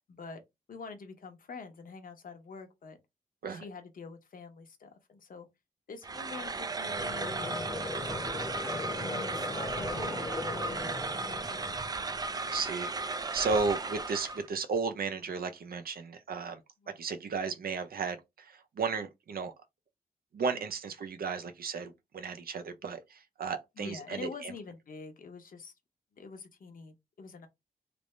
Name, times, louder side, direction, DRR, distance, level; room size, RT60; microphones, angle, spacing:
voice 1, 0.1-0.4 0.7-3.0 3.5-5.5 5.9-7.7 8.8-11.8 16.8-17.0 20.5-20.6 23.8-25.7 26.2-27.5, left 4 dB, 60° left, 0.8 m, -46 dB
sound 1, 6.0-14.5, right 3 dB, 25° right, 0.3 m, -35 dB
Conversation / Crowd, 6.8-12.1, left 2 dB, 15° left, 0.8 m, -39 dB
voice 2, 12.4-16.6 16.9-19.5 20.3-24.5, right 4 dB, 70° right, 0.6 m, -34 dB
3.3 x 2.6 x 3.2 m
wide cardioid pair, 135°, 16 cm